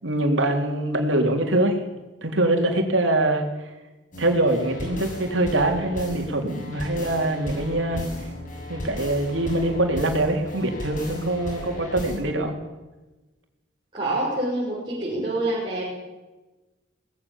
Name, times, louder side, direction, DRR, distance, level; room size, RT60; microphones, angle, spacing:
voice 1, 0.0-1.8 2.2-3.4 4.2-8.0 8.7-12.5, right 1 dB, 85° right, 3 dB, 3.9 m, -23 dB
sound 1, 4.1-12.2, left 1 dB, 45° left, 7.4 m, -36 dB
voice 2, 13.9-15.9, right 1 dB, 25° right, -7 dB, 6.6 m, -26 dB
24.0 x 19.0 x 7.4 m, 1.1 s
head